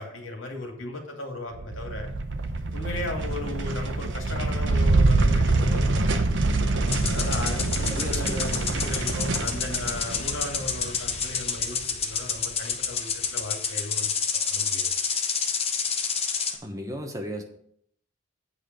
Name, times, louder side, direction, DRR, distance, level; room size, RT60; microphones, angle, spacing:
voice 1, 0.0-2.1 2.7-6.2 7.0-14.9, left 2 dB, 85° left, 2 dB, 2.3 m, -36 dB
sound 1, 1.6-12.1, right 2 dB, 65° right, 0.8 m, -25 dB
sound 2, 6.9-16.6, left 6 dB, 30° left, 0.9 m, -29 dB
voice 2, 7.9-8.6 16.6-17.4, equal, 15° right, 4 dB, 1.0 m, -34 dB
8.5 x 5.2 x 6.6 m, 0.67 s
head